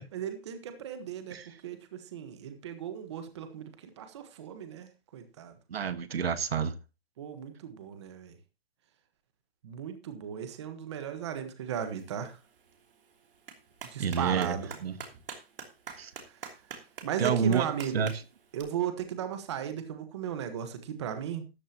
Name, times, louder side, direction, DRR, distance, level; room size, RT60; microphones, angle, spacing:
voice 1, 0.1-1.4 1.6-3.7 4.0-4.9 5.1-5.5 7.2-8.3 9.6-12.4 13.8-14.7 17.0-18.1 18.5-21.4, right 9 dB, 30° right, 1.3 m, -36 dB
voice 2, 5.7-6.8 14.0-15.0 16.0-16.1 17.2-17.6 17.9-18.2, right 7 dB, 80° right, 1.5 m, -29 dB
Clapping, 12.0-18.6, right 6 dB, 60° right, 3.1 m, -47 dB
13.5 x 11.0 x 2.9 m
hypercardioid pair, 180°, 30 cm